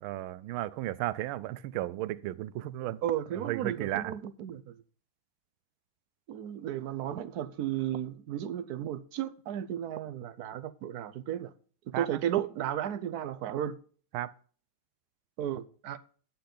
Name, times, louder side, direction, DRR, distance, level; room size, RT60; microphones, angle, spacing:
voice 1, 0.0-3.0 3.5-4.1 11.9-12.1 14.1-14.3, right 14 dB, 90° right, 1.4 m, -34 dB
voice 2, 3.0-4.7 6.3-11.5 11.9-13.8 15.4-16.0, right 10 dB, 65° right, 1.0 m, -34 dB
11.5 x 8.5 x 3.9 m
omnidirectional pair, 2.2 m